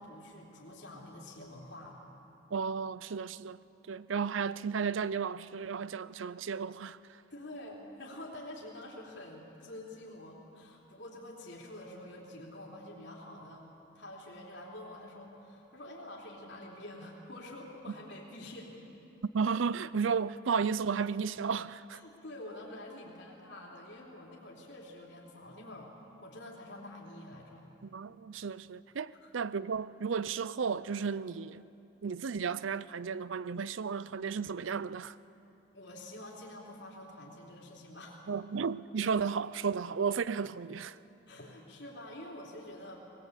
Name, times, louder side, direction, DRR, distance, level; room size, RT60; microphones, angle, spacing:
voice 1, 0.0-2.0 7.3-13.7 13.9-18.7 21.9-25.9 26.2-27.6 29.2-29.3 35.7-38.2 41.2-43.0, left 1 dB, 65° left, 3.5 m, -47 dB
voice 2, 2.5-3.6 3.9-7.0 19.3-22.0 27.8-31.6 32.0-35.2 38.3-41.0, right 6 dB, 85° right, 0.5 m, -33 dB
21.0 x 19.0 x 8.3 m
head